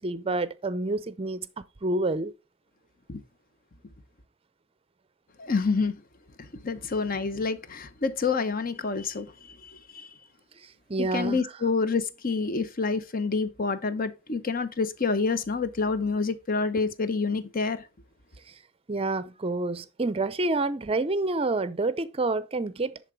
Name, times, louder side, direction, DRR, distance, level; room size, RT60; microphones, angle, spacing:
voice 1, 0.0-1.5 1.8-2.3 10.6-11.4 18.5-18.6 18.9-23.0, right 2 dB, 30° right, 0.5 m, -28 dB
voice 2, 5.4-5.9 6.4-10.1 11.0-17.8, left 4 dB, 45° left, 0.8 m, -28 dB
10.5 x 3.8 x 4.6 m
head